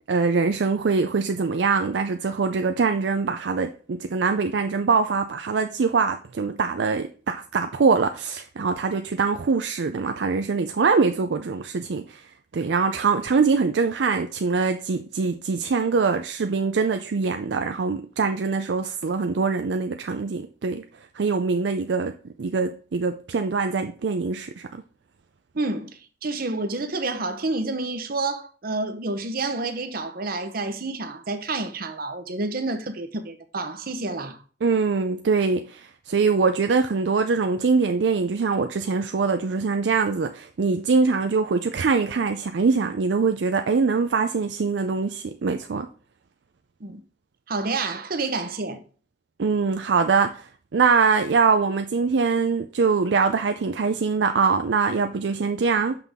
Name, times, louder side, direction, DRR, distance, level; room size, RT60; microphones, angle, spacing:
voice 1, 0.1-20.8 21.1-24.8 34.6-45.9 49.4-56.0, right 4 dB, 70° right, 0.5 m, -23 dB
voice 2, 25.5-34.4 46.8-47.0 47.5-48.8, right 3 dB, 55° right, 0.9 m, -29 dB
5.8 x 5.7 x 3.5 m
head